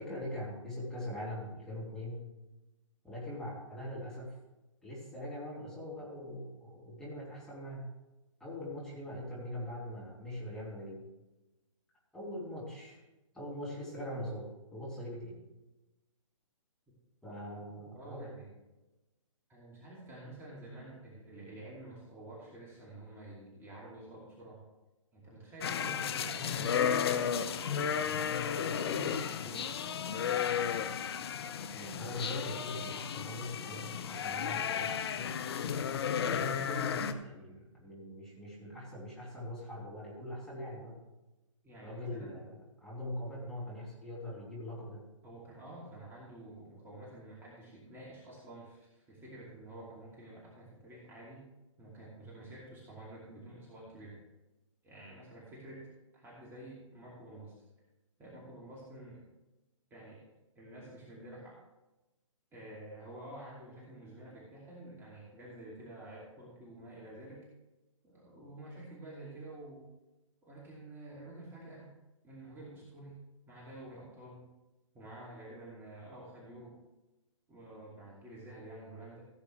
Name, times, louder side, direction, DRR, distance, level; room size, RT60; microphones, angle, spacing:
voice 1, 0.0-2.3 3.0-4.3 4.8-7.9 8.4-11.0 12.1-13.0 13.3-15.4 17.2-18.3 31.7-35.4 36.2-41.0 41.8-45.0, left 1 dB, 5° left, -7 dB, 2.8 m, -42 dB
voice 2, 17.9-18.6 19.5-24.6 25.1-28.3 28.7-29.7 41.6-42.3 45.2-51.4 51.8-54.2 54.8-55.9 56.1-57.5 58.2-59.2 59.9-60.2 60.5-61.6 62.5-67.5 68.0-69.9 70.4-71.9 72.2-73.2 73.5-74.5 74.9-76.8 77.5-79.3, right 1 dB, 15° right, -5 dB, 2.5 m, -49 dB
sound 1, 25.6-37.1, left 8 dB, 50° left, 0.7 m, -33 dB
16.0 x 8.2 x 3.3 m, 1.0 s
figure-of-eight pair, 135°, 17 cm